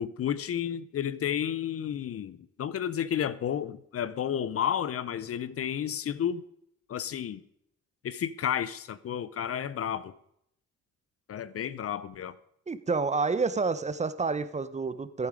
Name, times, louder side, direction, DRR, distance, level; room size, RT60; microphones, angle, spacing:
voice 1, 0.0-6.4 6.9-7.4 8.0-10.1 11.3-12.3, left 9 dB, 50° left, 0.7 m, -31 dB
voice 2, 12.7-15.3, right 4 dB, 25° right, 0.7 m, -29 dB
15.0 x 8.5 x 4.9 m
cardioid pair, 90°, 30 cm